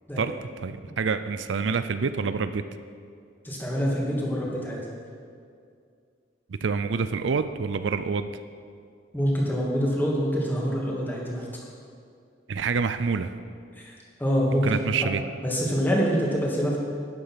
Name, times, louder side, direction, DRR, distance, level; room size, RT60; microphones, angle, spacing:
voice 1, 0.6-2.6 6.5-8.4 12.5-13.3 14.6-15.2, right 5 dB, 75° right, 11 dB, 0.5 m, -27 dB
voice 2, 3.4-4.8 9.1-11.5 13.8-14.8 15.4-16.8, equal, 10° left, -3 dB, 2.3 m, -26 dB
12.0 x 9.9 x 5.8 m, 2.3 s
head